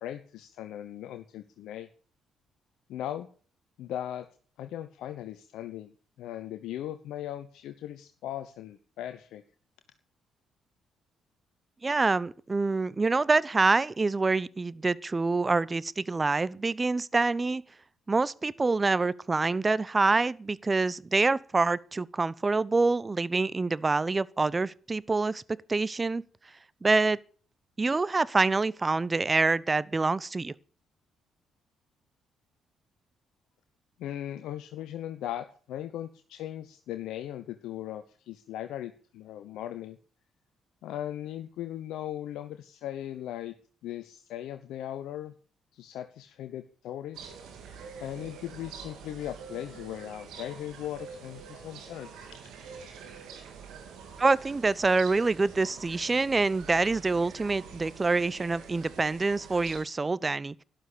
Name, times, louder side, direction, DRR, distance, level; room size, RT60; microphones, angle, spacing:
voice 1, 0.0-1.9 2.9-3.3 3.8-4.3 4.6-5.9 6.2-9.4 34.0-40.0 40.8-43.5 43.8-45.3 45.7-47.2 48.0-52.3, left 12 dB, 70° left, 0.9 m, -38 dB
voice 2, 11.8-17.6 18.1-25.4 25.7-26.2 26.8-27.2 27.8-30.5 54.2-60.5, right 3 dB, 30° right, 0.9 m, -26 dB
sound 1, 47.1-59.8, right 6 dB, 70° right, 3.2 m, -46 dB
12.5 x 12.0 x 8.5 m
hypercardioid pair, 45°, 0 cm